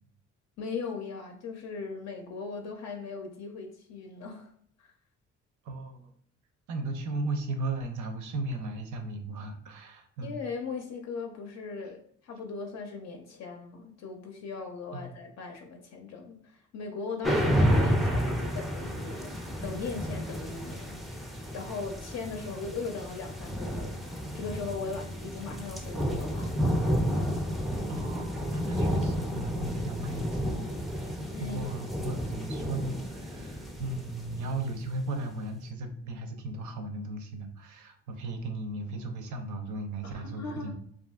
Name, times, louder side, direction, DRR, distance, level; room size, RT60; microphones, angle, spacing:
voice 1, 0.6-4.5 4.8-4.9 10.2-24.0 24.3-27.0 31.3-31.7 40.0-40.7, left 4 dB, 60° left, 3 dB, 0.5 m, -39 dB
voice 2, 5.6-6.1 6.7-10.4 14.9-15.2 27.9-40.7, right 2 dB, 75° right, 5 dB, 0.6 m, -36 dB
sound 1, 17.2-35.1, equal, ahead, 0.4 m, -31 dB
2.7 x 2.5 x 2.3 m, 0.64 s
cardioid pair, 90°, 30 cm